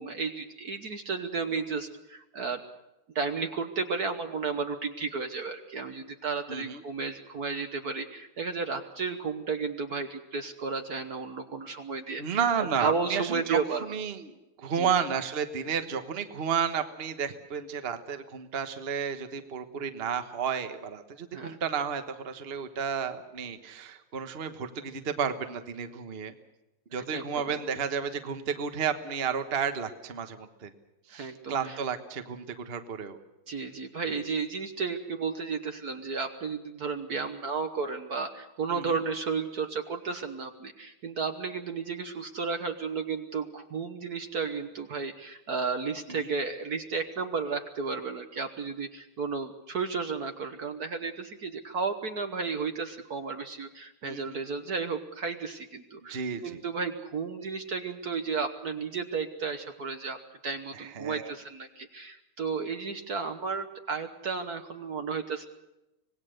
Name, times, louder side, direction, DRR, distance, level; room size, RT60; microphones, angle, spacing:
voice 1, 0.0-2.6 3.1-12.4 12.8-13.8 14.7-14.9 21.3-21.6 26.9-27.6 31.1-31.8 33.5-60.2 60.4-65.5, right 5 dB, 50° right, 6 dB, 1.4 m, -33 dB
voice 2, 6.5-6.8 12.2-26.3 26.9-30.7 31.1-33.2 34.1-34.2 38.7-38.9 46.1-46.3 54.0-54.4 56.1-56.6 60.7-61.3, right 7 dB, 35° right, 8 dB, 1.2 m, -32 dB
25.5 x 19.0 x 6.6 m, 0.94 s
omnidirectional pair, 2.4 m